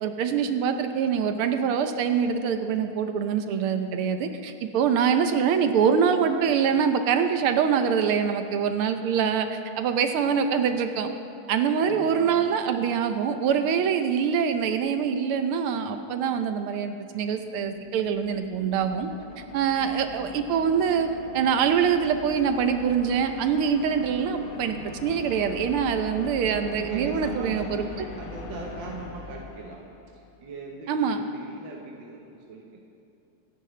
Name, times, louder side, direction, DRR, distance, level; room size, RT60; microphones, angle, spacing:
voice 1, 0.0-11.1 11.5-19.1 19.5-21.1 21.3-27.8 30.9-31.3, right 7 dB, 85° right, 7 dB, 1.6 m, -24 dB
voice 2, 11.8-12.4 12.7-12.9 26.8-29.8 30.1-32.8, right 4 dB, 60° right, -1 dB, 1.8 m, -39 dB
sound 1, 17.3-30.3, left 5 dB, 80° left, 0.6 m, -41 dB
26.0 x 10.0 x 3.3 m, 2.7 s
omnidirectional pair, 2.4 m